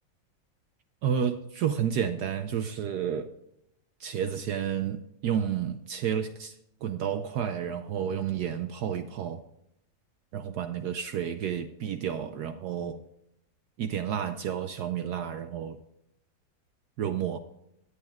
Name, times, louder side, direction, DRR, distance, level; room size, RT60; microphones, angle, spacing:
voice 1, 1.0-3.3 4.0-6.6 6.8-9.4 10.3-13.0 13.8-15.8 17.0-17.4, right 8 dB, 70° right, 1.1 m, -31 dB
20.5 x 8.5 x 2.4 m
omnidirectional pair, 2.0 m